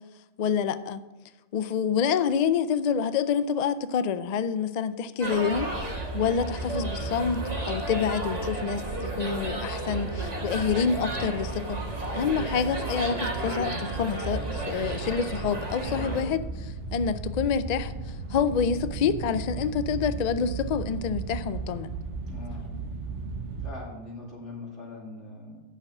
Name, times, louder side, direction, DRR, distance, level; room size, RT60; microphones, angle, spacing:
voice 1, 0.4-1.0 1.5-5.7 6.1-11.8 12.1-17.9 18.3-21.9, left 6 dB, 55° left, 0.4 m, -27 dB
sound 1, 5.2-16.2, right 1 dB, 35° right, 1.7 m, -34 dB
sound 2, 5.5-23.7, right 3 dB, 85° right, 1.2 m, -36 dB
voice 2, 12.2-12.6 15.8-16.1 22.3-22.6 23.6-25.6, left 2 dB, 85° left, 3.0 m, -42 dB
8.8 x 6.6 x 6.1 m
omnidirectional pair, 1.2 m